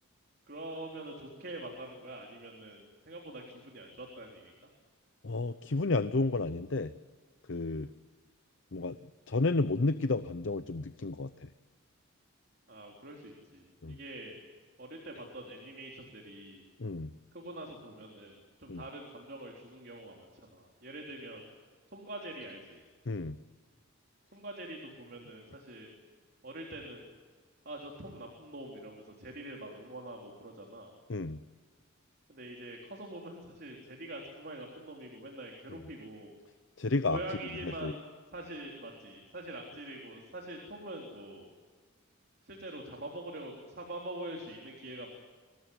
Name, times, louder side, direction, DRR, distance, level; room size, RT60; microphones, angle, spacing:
voice 1, 0.5-4.5 12.7-14.4 14.8-16.6 17.3-21.4 21.9-22.8 24.3-25.9 26.4-27.1 27.7-30.9 32.3-36.3 37.1-38.0 38.3-41.5 42.4-45.1, right 1 dB, 50° right, 0 dB, 3.8 m, -44 dB
voice 2, 5.2-6.9 7.5-7.9 8.7-11.5 13.8-14.0 16.8-17.1 18.7-18.8 23.1-23.4 31.1-31.4 36.8-37.2 37.6-37.9, left 3 dB, 60° left, 12 dB, 0.7 m, -31 dB
25.5 x 19.0 x 9.7 m, 1.5 s
head